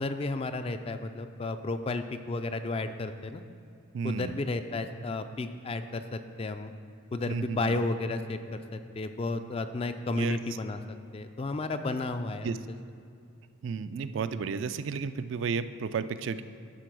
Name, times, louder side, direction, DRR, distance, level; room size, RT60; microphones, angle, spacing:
voice 1, 0.0-3.4 4.0-6.7 7.1-10.8 11.1-12.5, left 2 dB, 30° left, 9 dB, 0.3 m, -32 dB
voice 2, 3.9-4.4 7.3-7.8 10.1-10.4 12.4-12.6 13.6-16.4, right 5 dB, 65° right, 12 dB, 0.3 m, -32 dB
11.5 x 3.9 x 6.1 m, 2.5 s
head